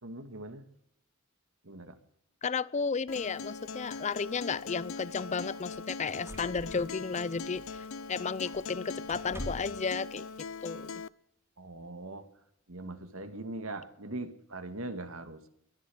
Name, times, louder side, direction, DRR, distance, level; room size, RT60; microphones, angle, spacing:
voice 1, 0.0-0.6 1.6-2.0 6.3-6.5 11.6-12.3 12.7-15.5, right 2 dB, 90° right, 9 dB, 2.0 m, -41 dB
voice 2, 2.4-10.3 10.6-10.9, left 5 dB, 35° left, 20 dB, 0.5 m, -33 dB
Acoustic guitar, 3.1-11.1, left 4 dB, 80° left, 0.6 m, -41 dB
sound 1, 5.5-5.7 6.1-8.0 8.4-8.8 9.1-9.8 11.0-11.1, equal, 15° right, 2.8 m, -45 dB
22.0 x 10.5 x 6.3 m, 0.74 s
head